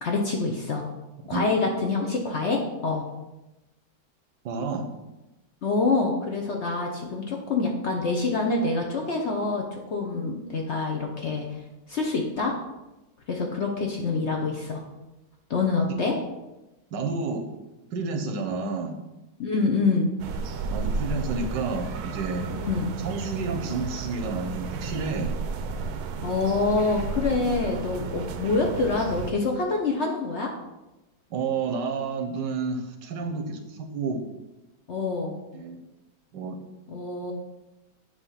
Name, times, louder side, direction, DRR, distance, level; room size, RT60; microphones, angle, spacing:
voice 1, 0.0-0.8 1.3-3.0 5.6-11.4 11.9-12.6 13.3-14.8 15.5-16.2 19.4-20.1 22.5-22.9 26.2-30.5 34.9-35.4 36.9-37.3, left 3 dB, 55° left, 1 dB, 0.8 m, -26 dB
voice 2, 4.4-4.9 16.9-17.4 17.9-19.0 20.6-22.5 23.0-25.3 31.3-34.2 35.5-35.8 36.3-36.6, right 4 dB, 85° right, 5 dB, 1.5 m, -30 dB
sound 1, 20.2-29.3, right 4 dB, 70° right, 1.0 m, -33 dB
8.1 x 3.0 x 5.5 m, 1.0 s
omnidirectional pair, 1.9 m